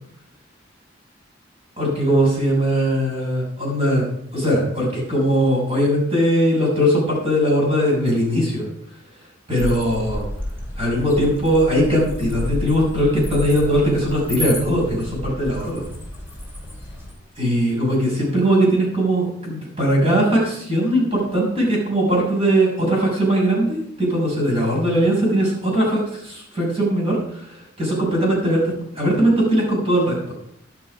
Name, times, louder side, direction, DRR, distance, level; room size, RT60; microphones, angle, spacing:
voice 1, 1.8-4.0 4.3-8.6 9.5-10.2 10.8-15.9 17.4-28.6 28.9-30.1, equal, 30° right, -3 dB, 6.6 m, -20 dB
sound 1, 9.6-17.1, left 1 dB, 10° right, 3.7 m, -31 dB
12.5 x 11.5 x 5.0 m, 0.72 s
head